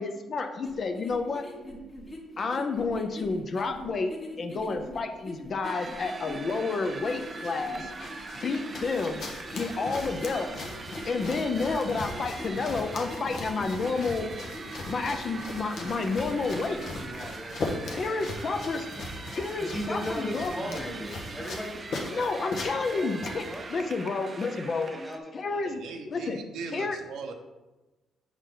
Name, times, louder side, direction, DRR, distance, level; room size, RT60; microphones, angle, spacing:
voice 1, 0.0-1.5 2.4-4.1 4.4-7.9 8.4-9.2 9.5-10.7 11.0-14.3 14.9-16.8 18.0-18.9 19.3-20.5 22.1-23.4 23.7-24.9 25.3-25.8 26.1-26.4 26.7-27.0, left 4 dB, 45° left, 6 dB, 0.6 m, -30 dB
sound 1, 0.6-17.1, equal, 30° left, 1.3 m, -43 dB
sound 2, 5.6-25.2, right 3 dB, 35° right, 0.5 m, -42 dB
sound 3, 6.8-23.8, left 3 dB, 70° left, 1.0 m, -40 dB
voice 2, 17.0-18.2 19.6-23.6 24.7-25.8, equal, 10° left, 0 dB, 1.6 m, -38 dB
voice 3, 25.5-27.3, right 5 dB, 80° right, 5 dB, 0.7 m, -39 dB
6.6 x 4.8 x 3.8 m, 1.1 s
cardioid pair, 90°, 0 cm